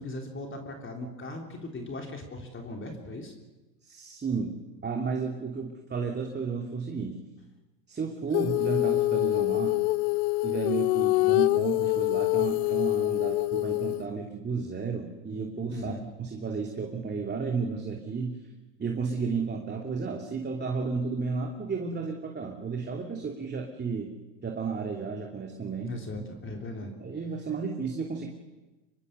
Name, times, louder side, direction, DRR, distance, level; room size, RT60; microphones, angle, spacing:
voice 1, 0.0-3.4 15.7-16.0 25.8-26.9, left 2 dB, 25° left, 3 dB, 3.6 m, -38 dB
voice 2, 3.8-7.2 7.9-9.8 10.4-15.9 16.2-18.4 18.8-24.1 24.4-25.9 27.0-28.3, right 5 dB, 20° right, 2 dB, 2.9 m, -33 dB
Female singing, 8.3-14.0, left 20 dB, 65° left, 0.7 m, -25 dB
25.5 x 22.5 x 6.8 m, 1.1 s
hypercardioid pair, 95°, 49 cm